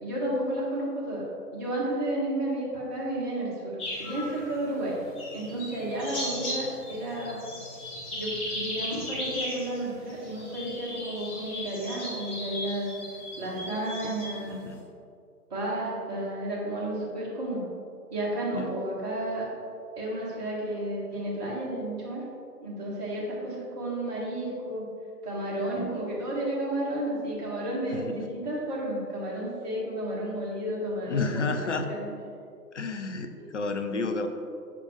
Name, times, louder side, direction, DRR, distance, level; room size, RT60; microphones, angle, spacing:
voice 1, 0.0-5.0 5.3-7.4 8.1-12.9 13.4-14.6 15.5-17.6 18.1-19.5 20.0-22.2 22.6-24.9 25.2-32.1 33.4-33.5, right 1 dB, 25° right, -6 dB, 1.7 m, -32 dB
sound 1, 3.8-14.8, left 1 dB, 5° left, 0.6 m, -37 dB
voice 2, 14.5-14.8 18.5-18.7 25.8-25.9 27.9-28.1 31.1-31.9 32.7-34.3, left 4 dB, 50° left, 6 dB, 0.6 m, -31 dB
7.5 x 5.9 x 3.5 m, 2.4 s
figure-of-eight pair, 135°, 49 cm